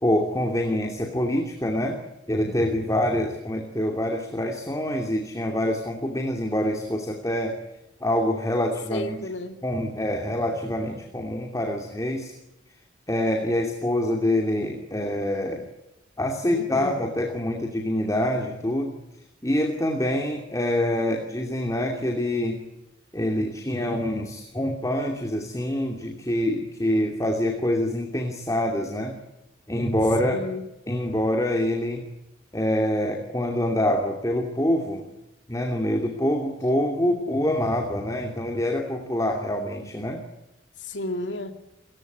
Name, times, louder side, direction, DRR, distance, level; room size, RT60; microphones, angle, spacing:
voice 1, 0.0-2.0 2.3-7.6 8.0-9.3 9.6-12.3 13.1-15.6 16.2-19.0 19.4-22.6 23.1-29.2 29.7-30.4 30.9-32.1 32.5-35.1 35.5-40.2, left 1 dB, 15° left, 2.7 m, -25 dB
voice 2, 8.9-9.6 16.5-17.0 30.2-30.7 40.8-41.5, left 1 dB, 75° left, 2.3 m, -32 dB
29.0 x 15.5 x 9.3 m
head